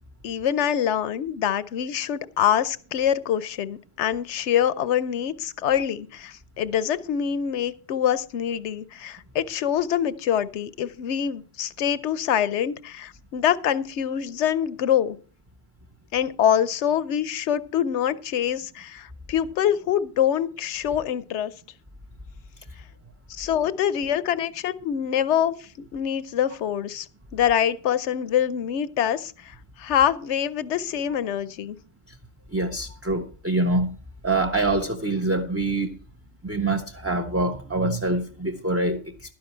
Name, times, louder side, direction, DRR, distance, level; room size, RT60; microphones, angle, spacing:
voice 1, 0.2-15.2 16.1-21.5 23.3-31.8, left 9 dB, 70° left, 1.0 m, -25 dB
voice 2, 32.5-34.0 34.2-36.0 36.4-39.0, right 2 dB, 15° right, 0.7 m, -25 dB
12.0 x 10.5 x 4.4 m
omnidirectional pair, 1.2 m